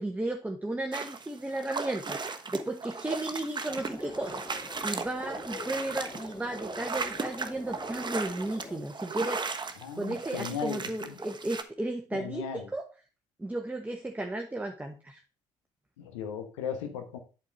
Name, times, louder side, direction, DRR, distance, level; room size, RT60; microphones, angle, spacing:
voice 1, 0.0-9.4 9.9-12.9 13.4-15.2, right 2 dB, 10° right, 3 dB, 1.2 m, -34 dB
sound 1, 0.9-11.6, right 4 dB, 30° right, 1.2 m, -36 dB
sound 2, 3.7-8.8, left 3 dB, 25° left, 1.3 m, -45 dB
voice 2, 9.8-11.1 12.1-12.7 16.0-17.2, left 7 dB, 80° left, 6 dB, 1.1 m, -36 dB
8.3 x 4.6 x 6.3 m, 0.35 s
hypercardioid pair, 50°, 15 cm